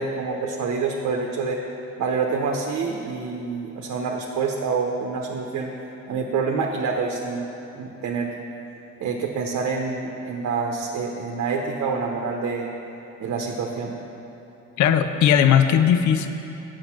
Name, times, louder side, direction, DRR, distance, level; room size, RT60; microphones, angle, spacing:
voice 1, 0.0-1.6 2.0-5.7 6.1-7.5 7.7-8.3 9.0-12.7 13.2-14.0, right 4 dB, 65° right, 1 dB, 0.9 m, -27 dB
voice 2, 14.8-16.3, left 9 dB, 70° left, 9 dB, 0.5 m, -18 dB
8.1 x 6.6 x 5.9 m, 3.0 s
cardioid pair, 90°, 30 cm